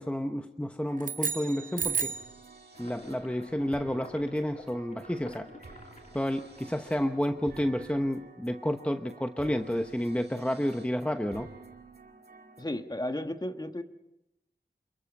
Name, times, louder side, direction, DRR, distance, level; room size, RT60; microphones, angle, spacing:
voice 1, 0.0-2.1 2.8-5.5 6.1-11.5, equal, 5° left, 6 dB, 1.0 m, -30 dB
sound 1, 0.9-12.6, right 3 dB, 75° right, 2.1 m, -52 dB
sound 2, 1.0-2.4, right 5 dB, 55° right, 0.8 m, -32 dB
sound 3, 2.7-7.9, left 2 dB, 45° left, 3.2 m, -52 dB
voice 2, 12.6-13.8, left 1 dB, 25° left, 7 dB, 1.5 m, -34 dB
28.0 x 22.5 x 5.4 m, 0.88 s
wide cardioid pair, 70°, 17 cm